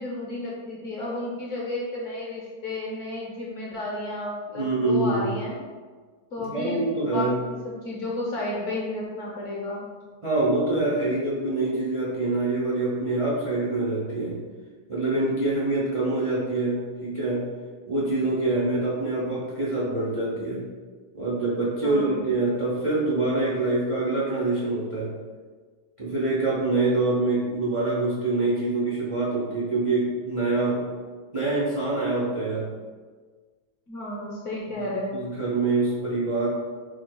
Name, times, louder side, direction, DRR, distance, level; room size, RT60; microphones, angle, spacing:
voice 1, 0.0-5.6 6.3-9.9 21.8-22.3 33.9-35.2, left 2 dB, 55° left, -4 dB, 0.9 m, -32 dB
voice 2, 4.6-5.3 6.4-7.4 10.2-14.3 14.9-17.5 17.9-20.6 21.1-25.1 26.0-30.8 31.3-32.7 35.1-36.5, right 2 dB, 55° right, -7 dB, 0.3 m, -25 dB
4.2 x 2.3 x 4.5 m, 1.5 s
omnidirectional pair, 2.0 m